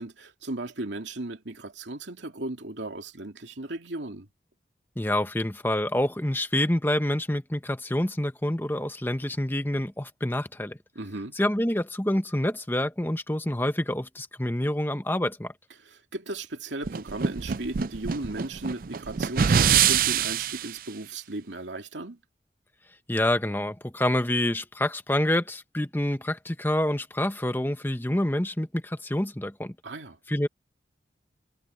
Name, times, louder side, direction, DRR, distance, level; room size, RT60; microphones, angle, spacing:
voice 1, 0.0-4.3 10.9-11.4 15.8-22.2 29.8-30.2, right 2 dB, 85° right, 2.6 m, -36 dB
voice 2, 5.0-10.8 11.4-15.5 23.1-29.7 30.3-30.5, left 1 dB, 10° left, 1.1 m, -27 dB
sound 1, 16.8-20.7, right 8 dB, 50° right, 0.4 m, -24 dB
head